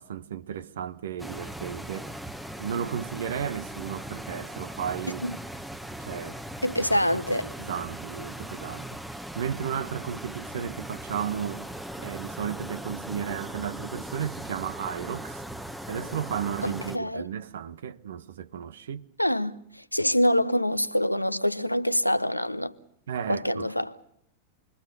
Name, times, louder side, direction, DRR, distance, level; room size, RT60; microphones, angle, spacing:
voice 1, 0.0-2.1 2.6-5.2 6.0-6.4 7.6-9.0 9.3-11.6 12.0-15.4 15.9-19.1 23.1-23.7, right 8 dB, 60° right, 1.3 m, -34 dB
sound 1, 1.2-17.0, right 1 dB, 5° right, 1.3 m, -39 dB
voice 2, 6.6-7.5 16.6-17.3 19.2-22.7 23.3-23.9, equal, 90° left, 1.0 m, -25 dB
28.5 x 22.0 x 6.9 m
figure-of-eight pair, 90°, 0 cm